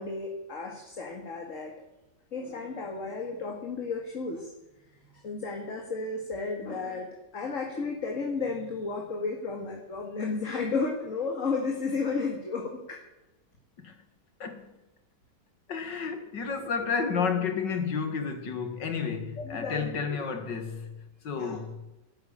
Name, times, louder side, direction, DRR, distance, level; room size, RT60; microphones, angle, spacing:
voice 1, 0.0-1.7 2.3-4.5 5.2-7.1 7.3-13.0 19.4-20.2 21.4-21.6, left 4 dB, 45° left, 2.3 m, -33 dB
voice 2, 14.4-14.7 15.7-20.9 21.2-21.8, left 5 dB, 85° left, 2.6 m, -31 dB
13.0 x 10.5 x 8.7 m
omnidirectional pair, 1.9 m